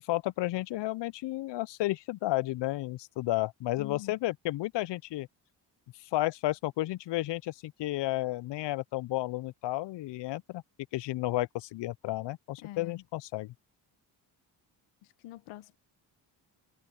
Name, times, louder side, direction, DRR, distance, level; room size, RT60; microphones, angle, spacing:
voice 1, 0.1-5.3 6.1-10.6 10.9-13.5, left 17 dB, 60° left, 0.6 m, -32 dB
voice 2, 3.8-4.2 12.6-13.0 15.0-15.7, left 15 dB, 85° left, 1.2 m, -45 dB
supercardioid pair, 50°, 49 cm